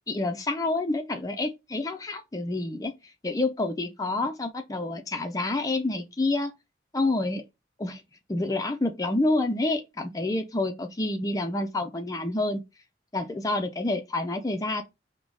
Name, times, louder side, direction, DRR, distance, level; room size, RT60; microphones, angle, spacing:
voice 1, 0.1-2.9 3.2-6.5 6.9-7.5 7.8-8.0 8.3-12.6 13.1-14.8, left 2 dB, 20° left, 0.4 m, -28 dB
3.7 x 2.1 x 3.1 m
head